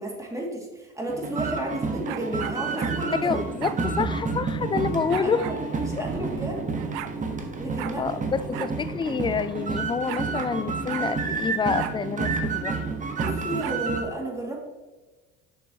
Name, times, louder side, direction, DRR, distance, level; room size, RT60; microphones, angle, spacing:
voice 1, 0.0-3.4 5.2-6.8 7.6-8.7 13.2-14.6, right 1 dB, 10° right, -2 dB, 2.1 m, -33 dB
sound 1, 1.1-14.0, right 4 dB, 25° right, 1.1 m, -30 dB
sound 2, 2.0-3.0 3.6-3.8 5.1-5.6 6.5-6.6 6.7-7.1 7.8-8.0 8.5-8.7 9.0-9.1 10.1-10.6 10.9-11.1 11.8-12.0 13.2-13.8, right 12 dB, 75° right, 0.5 m, -36 dB
voice 2, 3.2-5.5 8.0-12.8, left 5 dB, 15° left, 14 dB, 0.3 m, -28 dB
Thunder, 6.1-12.9, right 1 dB, 60° right, 1.7 m, -43 dB
6.7 x 6.1 x 2.8 m, 1.2 s
supercardioid pair, 80°, 30 cm